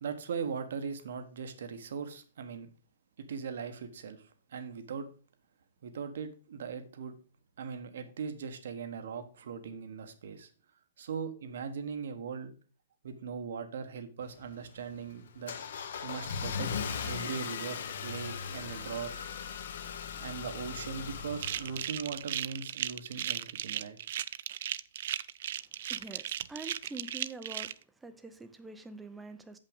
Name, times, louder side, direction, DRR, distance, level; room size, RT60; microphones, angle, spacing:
voice 1, 0.0-2.7 3.2-5.1 5.8-7.2 7.6-10.5 11.0-12.5 13.0-15.5 16.0-16.7 17.0-19.1 20.2-24.0, right 6 dB, 65° right, 9 dB, 1.3 m, -39 dB
Car / Engine starting, 14.2-22.4, left 6 dB, 60° left, 1.0 m, -39 dB
sound 1, 21.4-27.7, right 11 dB, 50° right, 0.3 m, -36 dB
voice 2, 25.9-27.7 28.0-29.6, right 3 dB, 5° right, 9 dB, 0.5 m, -45 dB
7.4 x 5.5 x 5.3 m, 0.38 s
hypercardioid pair, 175°, 0 cm